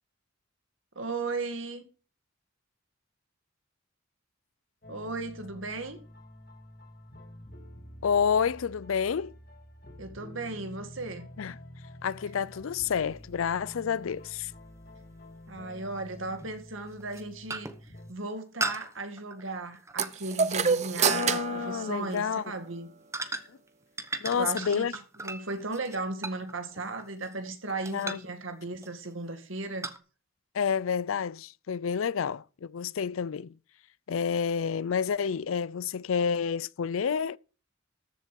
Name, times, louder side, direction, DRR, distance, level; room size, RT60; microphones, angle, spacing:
voice 1, 1.0-1.8 4.9-6.0 10.0-11.3 15.5-22.9 24.4-29.9, right 3 dB, 70° right, 2.2 m, -36 dB
sound 1, 4.8-18.1, left 1 dB, 50° left, 2.8 m, -48 dB
voice 2, 8.0-9.3 11.4-11.6 12.0-14.5 21.0-22.4 24.2-24.9 27.9-28.2 30.5-33.5 34.1-37.4, left 6 dB, 80° left, 0.5 m, -29 dB
sound 2, 12.6-12.7 15.1-15.2 16.4-16.6 17.0-17.2 17.5-17.9 18.6-20.8 21.1-21.4 22.0-22.2 23.1-23.7 24.0-27.5 27.9-28.4 28.8-29.1 29.8-30.0, right 3 dB, 15° right, 1.0 m, -37 dB
sound 3, 20.0-22.7, right 5 dB, 35° right, 0.7 m, -28 dB
14.0 x 7.5 x 5.3 m
head